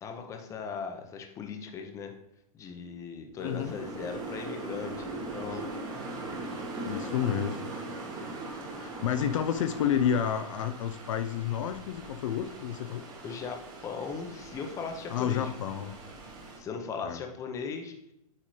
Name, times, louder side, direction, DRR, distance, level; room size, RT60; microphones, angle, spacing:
voice 1, 0.0-2.1 2.5-5.7 13.2-15.5 16.6-17.9, left 5 dB, 15° left, 4 dB, 0.7 m, -38 dB
voice 2, 3.4-3.7 6.9-7.6 8.8-13.0 15.1-15.9 17.0-17.2, left 9 dB, 60° left, 9 dB, 0.5 m, -30 dB
sound 1, 3.4-16.6, right 2 dB, 20° right, 1.2 m, -40 dB
8.4 x 3.7 x 3.1 m, 0.80 s
hypercardioid pair, 145°, 19 cm